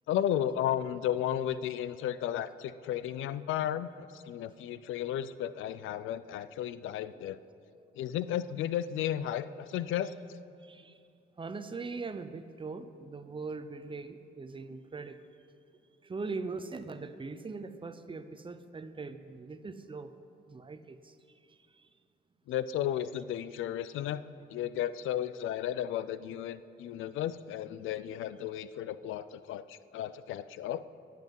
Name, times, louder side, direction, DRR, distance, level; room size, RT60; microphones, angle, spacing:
voice 1, 0.1-7.4 8.0-10.1 22.5-24.2 24.5-30.8, left 11 dB, 80° left, 15 dB, 0.5 m, -34 dB
voice 2, 11.4-15.2 16.0-20.1 20.5-21.1, right 4 dB, 25° right, 10 dB, 0.8 m, -41 dB
23.0 x 7.7 x 5.4 m, 2.5 s
cardioid pair, 90°, 20 cm